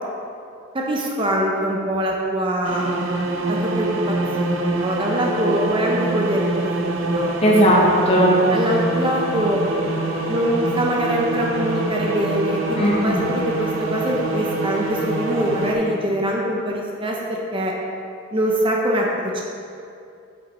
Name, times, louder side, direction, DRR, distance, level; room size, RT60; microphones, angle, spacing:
voice 1, 0.7-3.1 3.5-6.4 7.0-7.3 8.5-9.6 10.3-17.7 18.3-19.4, equal, 25° right, -1 dB, 0.7 m, -23 dB
sound 1, 2.6-15.7, right 2 dB, 75° right, 0.7 m, -25 dB
voice 2, 7.4-8.5 12.8-13.2, equal, 30° left, -3 dB, 1.3 m, -16 dB
7.9 x 5.9 x 4.2 m, 2.5 s
head